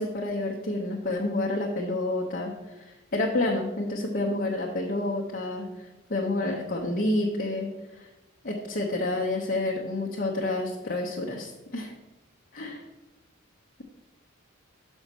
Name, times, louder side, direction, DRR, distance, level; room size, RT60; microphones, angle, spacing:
voice 1, 0.0-7.7 8.0-8.1 8.4-11.9 12.5-12.8, left 2 dB, 45° left, -2 dB, 0.9 m, -29 dB
6.4 x 5.4 x 6.1 m, 1.1 s
head